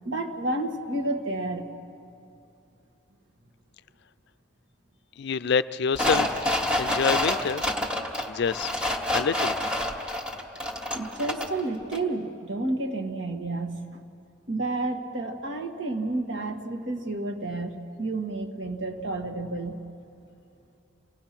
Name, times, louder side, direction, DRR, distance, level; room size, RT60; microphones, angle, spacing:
voice 1, 0.1-1.7 10.9-14.0 14.5-19.8, right 2 dB, 65° right, 3 dB, 1.7 m, -30 dB
voice 2, 5.2-7.6 8.3-8.7 9.1-9.6, left 5 dB, 60° left, 14 dB, 0.4 m, -27 dB
sound 1, 5.9-11.6 11.9-12.0, left 1 dB, 5° right, 1.5 m, -28 dB
28.0 x 18.5 x 5.9 m, 2.6 s
head